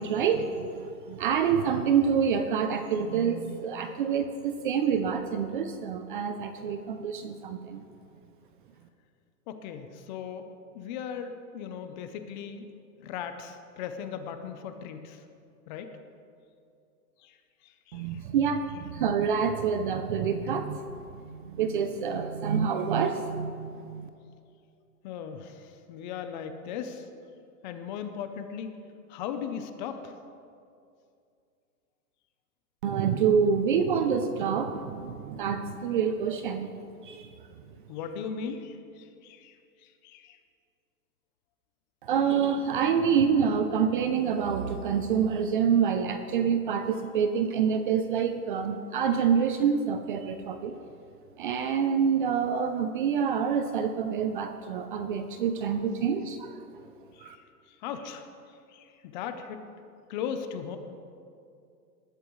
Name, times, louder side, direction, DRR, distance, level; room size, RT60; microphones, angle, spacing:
voice 1, 0.0-7.8 17.9-24.1 32.8-36.7 37.0-37.3 42.0-50.8 51.4-56.6 57.2-57.4, right 7 dB, 35° right, 8 dB, 0.5 m, -27 dB
voice 2, 9.5-10.5 10.7-12.7 13.0-15.2 15.7-15.9 17.2-17.4 17.6-18.2 25.0-27.1 27.6-28.8 29.1-30.1 37.9-40.4 57.1-57.3 57.7-58.3 58.7-59.6 60.1-60.8, left 7 dB, 30° left, 8 dB, 0.7 m, -38 dB
19.5 x 12.0 x 3.2 m, 2.5 s
hypercardioid pair, 150°, 48 cm